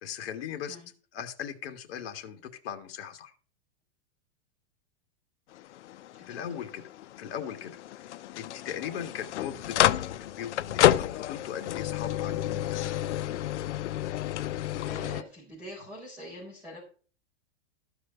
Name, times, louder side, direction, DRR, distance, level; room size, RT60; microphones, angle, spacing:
voice 1, 0.0-0.8 1.1-3.3 6.3-6.8 7.2-12.8, left 9 dB, 60° left, 1.8 m, -39 dB
sound 1, 5.5-15.2, left 13 dB, 85° left, 0.6 m, -30 dB
voice 2, 6.1-6.6 14.8-16.8, equal, 5° right, 4.0 m, -44 dB
13.5 x 5.0 x 6.8 m
supercardioid pair, 165°, 34 cm